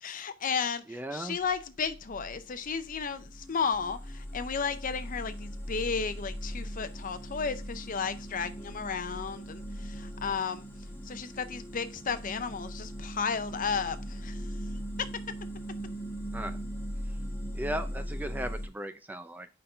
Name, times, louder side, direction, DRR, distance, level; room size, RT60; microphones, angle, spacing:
voice 1, 0.0-10.7 11.0-14.5 15.0-15.1, left 6 dB, 40° left, 0.6 m, -33 dB
voice 2, 0.9-1.4 16.3-16.6 17.0-17.2 17.5-19.5, right 1 dB, 10° right, 0.3 m, -37 dB
sound 1, 1.5-18.7, equal, 10° left, 1.4 m, -39 dB
5.2 x 4.4 x 5.5 m
head